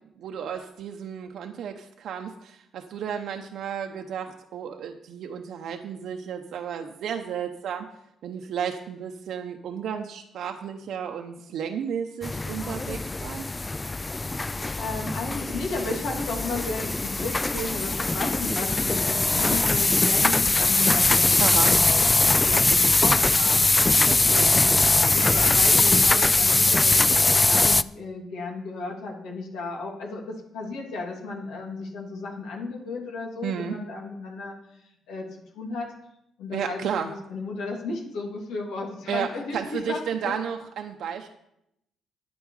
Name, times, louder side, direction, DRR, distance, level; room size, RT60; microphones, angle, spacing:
voice 1, 0.2-7.9 8.2-13.4 21.4-21.7 24.0-24.6 33.4-33.8 36.5-37.1 39.1-41.3, right 8 dB, 75° right, 4 dB, 0.8 m, -33 dB
sound 1, 12.2-27.8, left 2 dB, 20° left, 0.3 m, -21 dB
voice 2, 14.6-24.1 24.5-24.7 25.1-34.6 35.1-35.3 35.5-35.9 36.4-40.4, left 3 dB, 85° left, -1 dB, 2.7 m, -34 dB
9.7 x 9.2 x 4.8 m, 0.79 s
cardioid pair, 90°, 0 cm